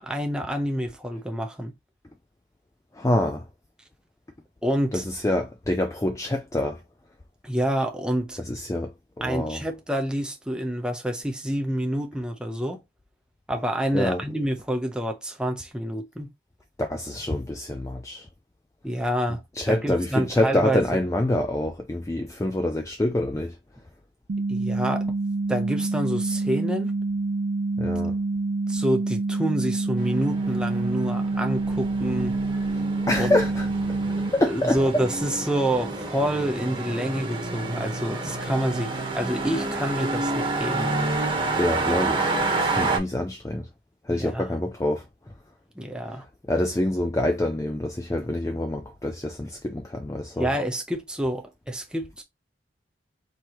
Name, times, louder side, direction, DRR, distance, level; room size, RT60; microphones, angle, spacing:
voice 1, 0.0-1.7 4.6-5.1 7.4-8.4 9.2-12.8 13.5-16.3 18.8-19.4 19.7-21.0 24.5-25.1 25.5-26.9 28.7-32.3 33.2-33.4 34.4-40.9 44.1-44.5 45.8-46.2 50.4-52.2, equal, 5° right, 0.8 m, -28 dB
voice 2, 3.0-3.4 4.9-6.8 8.5-8.9 9.2-9.6 13.9-14.2 16.8-18.3 19.6-23.5 27.8-28.1 33.1-33.7 34.3-35.0 41.6-42.3 42.6-43.7 44.1-45.0 46.5-50.5, left 1 dB, 15° left, 0.4 m, -26 dB
sound 1, 24.3-34.3, right 3 dB, 50° right, 0.4 m, -27 dB
sound 2, 30.0-43.0, right 2 dB, 25° right, 1.2 m, -29 dB
4.7 x 3.1 x 3.0 m
head